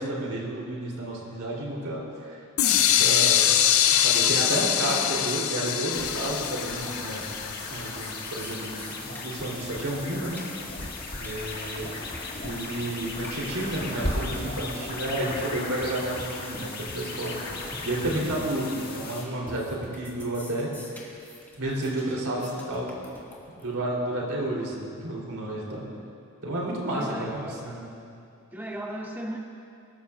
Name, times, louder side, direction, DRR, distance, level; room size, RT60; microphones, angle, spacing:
voice 1, 0.0-2.4 2.7-3.5 4.0-7.3 7.7-10.4 11.2-11.9 12.4-17.3 17.8-20.7 21.6-22.9 23.6-25.9 26.4-27.9, right 1 dB, 85° right, -4 dB, 3.6 m, -31 dB
sound 1, 2.6-8.4, left 10 dB, 75° left, 0.6 m, -23 dB
sound 2, 5.9-19.2, left 2 dB, 45° left, 1.8 m, -36 dB
sound 3, 7.4-7.5 7.7-23.7, left 1 dB, 10° left, 2.1 m, -45 dB
voice 2, 27.0-28.0 28.5-29.4, right 1 dB, 10° right, 0 dB, 0.9 m, -37 dB
23.0 x 13.5 x 2.5 m, 2.5 s
head